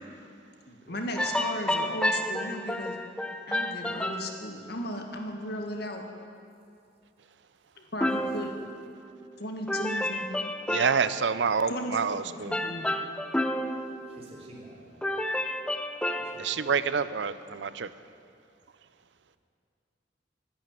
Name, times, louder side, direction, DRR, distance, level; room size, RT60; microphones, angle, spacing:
voice 1, 0.6-3.0 3.5-6.0 7.8-8.5 9.4-10.4 11.7-13.0, left 1 dB, 65° left, 3 dB, 1.8 m, -36 dB
sound 1, 1.1-4.4 8.0-9.4 9.7-11.3 12.5-14.7 15.0-16.7, left 1 dB, 5° left, 0.6 m, -31 dB
voice 2, 10.7-12.6 16.4-17.9, right 6 dB, 70° right, 14 dB, 0.6 m, -27 dB
voice 3, 13.6-15.3 16.1-17.1, equal, 35° right, -3 dB, 3.3 m, -52 dB
12.5 x 11.0 x 9.1 m, 2.5 s
head